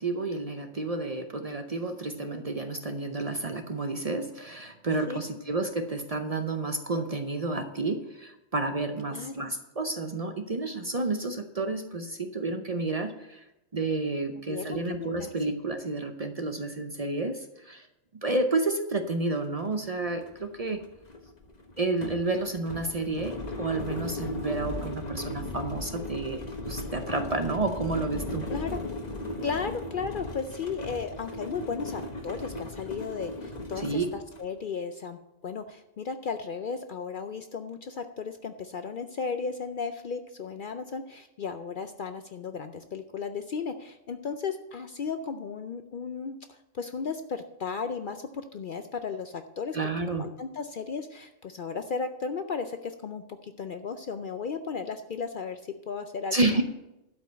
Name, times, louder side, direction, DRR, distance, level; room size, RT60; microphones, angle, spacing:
voice 1, 0.0-13.4 13.7-17.9 18.2-20.8 21.8-26.4 26.7-28.5 33.8-34.1 49.7-50.3 56.3-56.6, right 3 dB, 40° right, 7 dB, 0.6 m, -30 dB
voice 2, 9.1-9.5 14.5-15.3 28.5-28.8 29.4-34.0 34.4-49.8 50.1-55.6 55.9-56.4, left 5 dB, 55° left, 8 dB, 0.6 m, -35 dB
sound 1, 19.3-19.4 19.7-34.5, left 1 dB, 35° left, 1.3 m, -37 dB
12.0 x 5.3 x 7.9 m, 0.93 s
omnidirectional pair, 1.2 m